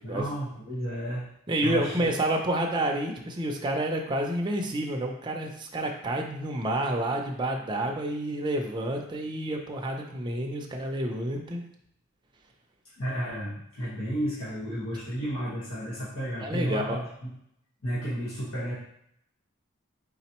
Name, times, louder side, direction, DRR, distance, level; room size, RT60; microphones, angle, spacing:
voice 1, 0.0-1.3 1.6-1.9 13.0-17.0 17.8-18.7, equal, 85° left, -9 dB, 1.3 m, -32 dB
voice 2, 1.5-11.6 16.4-17.0, right 1 dB, 20° right, 1 dB, 0.5 m, -29 dB
4.1 x 3.8 x 2.9 m, 0.73 s
head